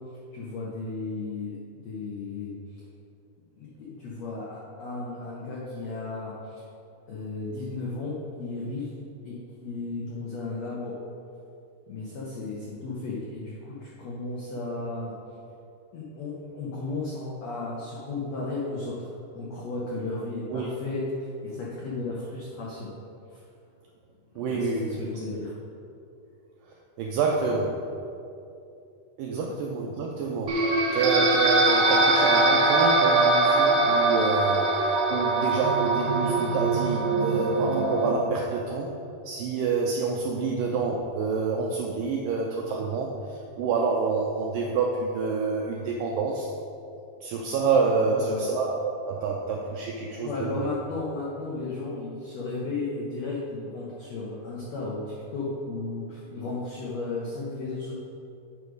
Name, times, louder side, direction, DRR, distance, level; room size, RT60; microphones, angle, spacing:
voice 1, 0.3-1.6 1.8-2.6 3.5-6.6 7.1-8.9 9.2-11.0 11.9-15.1 15.9-22.9 23.3-23.4 24.3-25.5 29.4-29.6 48.0-48.5 50.0-57.9, left 3 dB, 90° left, -5 dB, 1.5 m, -34 dB
voice 2, 24.4-25.4 27.0-27.9 29.2-38.9 39.2-46.5 47.2-50.7, right 4 dB, 85° right, 0 dB, 1.9 m, -28 dB
sound 1, 30.5-38.1, right 2 dB, 65° right, 1.8 m, -22 dB
8.5 x 4.8 x 5.2 m, 2.6 s
omnidirectional pair, 4.5 m